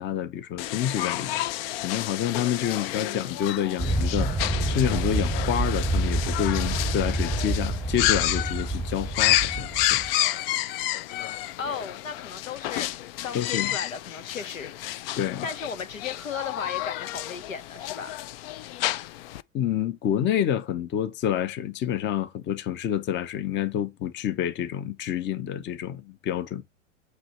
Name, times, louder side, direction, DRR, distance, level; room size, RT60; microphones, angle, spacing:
voice 1, 0.0-1.5 1.8-10.0 13.3-13.7 15.1-15.4 19.5-26.6, left 10 dB, 30° left, 0.8 m, -28 dB
sound 1, 0.6-19.4, left 14 dB, 50° left, 0.5 m, -30 dB
voice 2, 3.0-3.6 11.6-15.0 15.4-18.2, left 6 dB, 90° left, 1.0 m, -36 dB
Aircraft, 3.8-10.1, right 2 dB, ahead, 1.1 m, -28 dB
7.9 x 3.2 x 5.7 m
hypercardioid pair, 100°, 39 cm